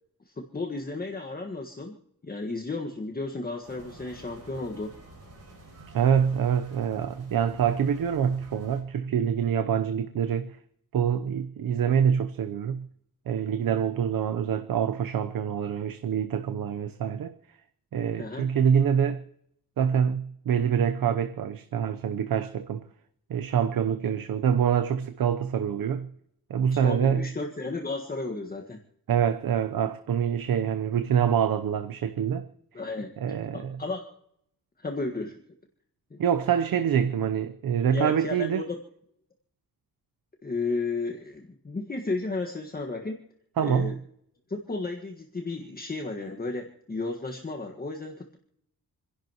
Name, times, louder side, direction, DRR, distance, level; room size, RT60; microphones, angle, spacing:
voice 1, 0.3-2.0 2.2-4.9 18.2-18.5 26.7-28.8 32.7-34.0 34.8-35.4 36.1-36.2 37.9-38.8 40.4-43.2 43.6-43.9 44.5-48.4, left 3 dB, 25° left, 1.6 m, -33 dB
sound 1, 3.6-8.8, right 2 dB, 45° right, 5.9 m, -50 dB
voice 2, 5.9-10.6 10.9-12.9 13.3-17.3 17.9-19.2 19.8-22.8 23.3-26.1 26.5-27.3 29.1-32.5 33.2-33.8 36.2-38.6 43.6-43.9, right 8 dB, 70° right, 0.8 m, -25 dB
29.5 x 11.0 x 3.0 m
wide cardioid pair, 130°, 35 cm